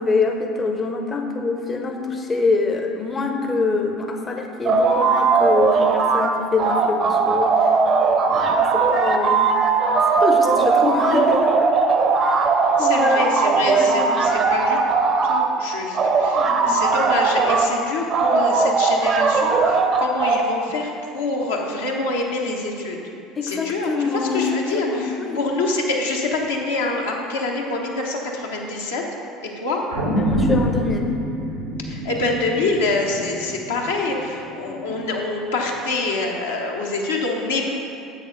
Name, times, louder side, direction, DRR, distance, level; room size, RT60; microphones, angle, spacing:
voice 1, 0.0-7.7 8.2-9.5 10.2-11.7 12.2-14.1 16.4-16.8 23.4-25.4 30.2-31.1 34.7-35.0, left 4 dB, 30° left, 4 dB, 0.6 m, -25 dB
sound 1, 4.6-6.3 6.6-15.5 15.9-17.7 18.1-20.4, right 4 dB, 45° right, 0.6 m, -18 dB
voice 2, 12.8-14.8 15.2-23.0 23.4-29.0 29.6-29.8 31.9-37.7, left 2 dB, 80° left, -2 dB, 0.9 m, -26 dB
sound 2, 29.9-34.4 34.8-34.9, equal, 90° right, 1.0 m, -25 dB
7.7 x 6.6 x 3.8 m, 2.6 s
figure-of-eight pair, 65°, 0 cm